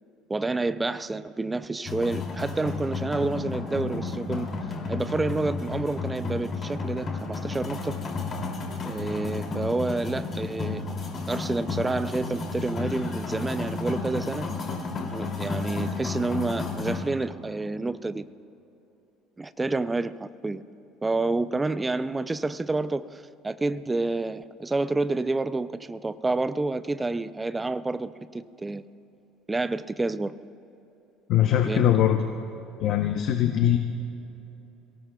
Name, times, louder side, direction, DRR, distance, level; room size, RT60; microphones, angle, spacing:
voice 1, 0.3-4.5 4.9-8.0 8.8-10.8 11.3-14.5 15.1-18.3 19.4-20.6 21.0-28.8 29.5-30.4 31.6-31.9, right 3 dB, 10° right, 13 dB, 0.3 m, -29 dB
sound 1, 1.8-17.0, left 4 dB, 35° left, 2.6 m, -32 dB
voice 2, 31.3-32.2 32.8-33.8, left 10 dB, 55° left, 5 dB, 0.7 m, -21 dB
28.5 x 18.0 x 2.3 m, 2.9 s
cardioid pair, 145°, 0 cm